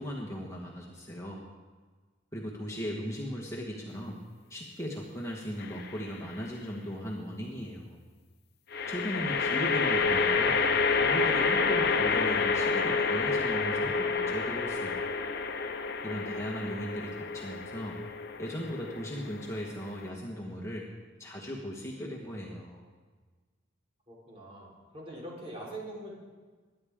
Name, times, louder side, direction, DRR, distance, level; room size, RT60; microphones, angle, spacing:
voice 1, 0.0-1.4 2.3-4.2 4.5-8.0 8.9-10.6 11.0-15.1 16.0-18.0 18.4-20.9 21.2-22.8, equal, 15° left, -2 dB, 1.5 m, -37 dB
sound 1, 5.6-6.2 8.7-20.1, left 4 dB, 60° left, 0.9 m, -29 dB
voice 2, 24.1-26.1, right 1 dB, 35° right, -4 dB, 4.0 m, -43 dB
22.0 x 10.0 x 3.7 m, 1.4 s
head